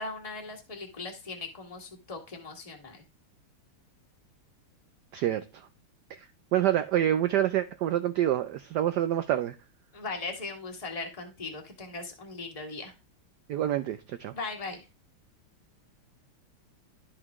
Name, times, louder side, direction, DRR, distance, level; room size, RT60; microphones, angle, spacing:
voice 1, 0.0-3.0 9.9-12.9 14.3-14.8, left 3 dB, 20° left, 1.6 m, -39 dB
voice 2, 5.1-5.4 6.1-6.3 6.5-9.6 13.5-14.3, right 12 dB, 85° right, 0.9 m, -27 dB
12.0 x 4.9 x 3.6 m
omnidirectional pair, 2.4 m